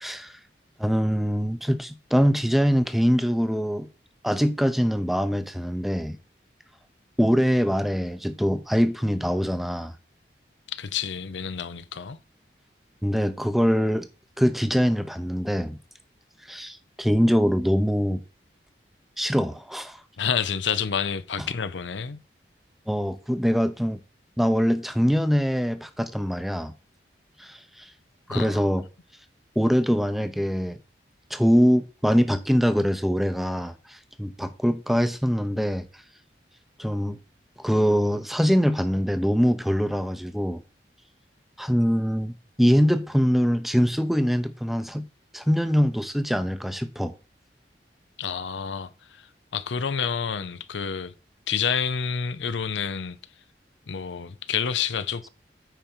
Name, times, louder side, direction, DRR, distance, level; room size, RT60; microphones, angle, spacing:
voice 1, 0.0-0.4 0.8-3.9 4.2-6.2 7.2-9.9 13.0-14.1 14.4-15.8 16.5-18.2 19.2-20.0 21.4-21.5 22.9-24.0 24.4-26.7 27.4-27.9 28.3-28.8 29.6-30.8 31.3-35.9 36.8-37.2 37.6-40.6 41.6-45.1 45.3-47.1, equal, ahead, 0.6 m, -23 dB
voice 2, 10.7-12.2 20.2-22.2 28.3-28.7 48.2-49.2 49.5-51.1 51.5-53.2 53.9-55.3, left 7 dB, 90° left, 0.6 m, -29 dB
9.2 x 5.0 x 4.5 m
head